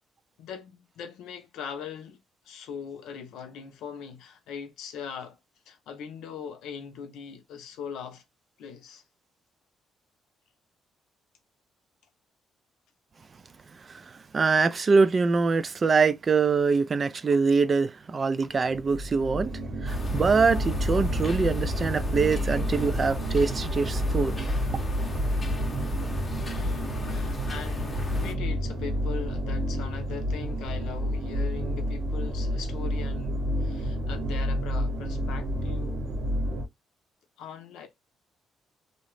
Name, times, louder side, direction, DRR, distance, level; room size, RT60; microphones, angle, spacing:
voice 1, 0.4-2.2 2.4-5.4 5.7-8.2 8.6-9.0 26.4-36.1 37.4-37.9, left 6 dB, 90° left, 0.6 m, -40 dB
voice 2, 14.3-24.4, right 4 dB, 35° right, 0.3 m, -24 dB
sound 1, 18.6-36.7, equal, 60° right, 1.0 m, -30 dB
sound 2, 19.9-28.3, left 1 dB, 30° left, 0.7 m, -34 dB
2.7 x 2.0 x 3.1 m
cardioid pair, 90°, 0 cm